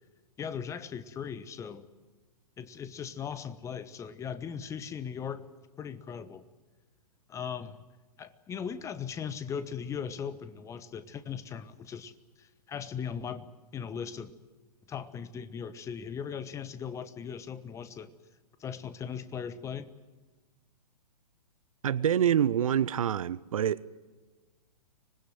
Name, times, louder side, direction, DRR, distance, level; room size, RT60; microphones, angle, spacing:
voice 1, 0.4-1.9 2.6-5.4 5.8-6.4 7.3-7.8 8.2-14.3 14.9-18.1 18.6-19.9, left 7 dB, 15° left, 1.1 m, -38 dB
voice 2, 21.8-23.9, right 9 dB, 55° right, 0.8 m, -26 dB
25.5 x 20.5 x 7.8 m
figure-of-eight pair, 115°, 21 cm